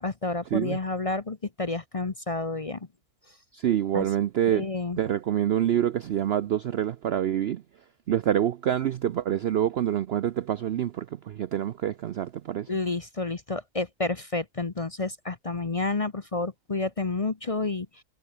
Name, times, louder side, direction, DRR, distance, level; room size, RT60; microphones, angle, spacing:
voice 1, 0.0-2.9 3.9-4.1 4.5-5.0 12.7-17.9, left 3 dB, 30° left, 0.8 m, -30 dB
voice 2, 3.5-4.7 5.0-7.6 8.1-12.7, right 10 dB, 65° right, 0.6 m, -26 dB
omnidirectional pair, 1.6 m